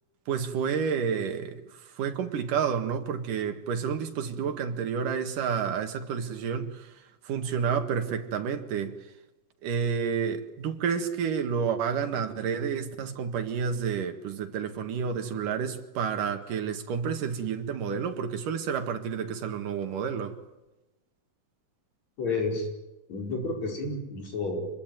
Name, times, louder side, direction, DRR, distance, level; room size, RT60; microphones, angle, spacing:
voice 1, 0.3-7.0 7.2-9.0 9.6-20.4, right 7 dB, 80° right, 3.4 m, -30 dB
voice 2, 22.2-22.7 23.1-24.7, left 3 dB, 55° left, 6.1 m, -30 dB
26.5 x 21.5 x 9.2 m
omnidirectional pair, 3.7 m